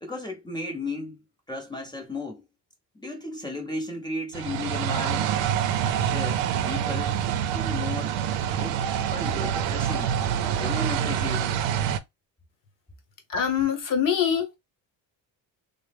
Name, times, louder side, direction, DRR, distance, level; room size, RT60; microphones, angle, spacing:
voice 1, 0.0-1.2 1.5-2.4 2.9-5.3 6.1-7.2 7.5-8.2 8.6-8.8 9.1-10.1 10.4-11.6, left 2 dB, 10° left, 0.6 m, -34 dB
sound 1, 4.3-12.0, right 9 dB, 80° right, 0.6 m, -26 dB
voice 2, 13.3-14.6, left 8 dB, 45° left, 1.0 m, -24 dB
3.1 x 2.1 x 3.3 m
cardioid pair, 135°, 44 cm